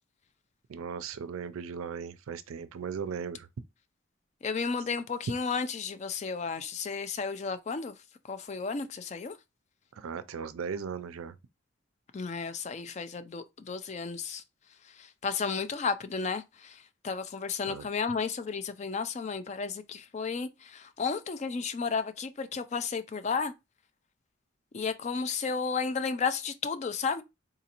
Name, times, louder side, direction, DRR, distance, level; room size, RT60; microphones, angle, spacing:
voice 1, 0.7-3.5 9.9-11.4 17.7-17.9, right 6 dB, 80° right, 0.4 m, -37 dB
voice 2, 4.4-8.0 8.3-9.4 12.1-14.4 14.8-23.5 24.7-27.2, left 5 dB, 35° left, 0.3 m, -33 dB
3.8 x 2.5 x 2.8 m
head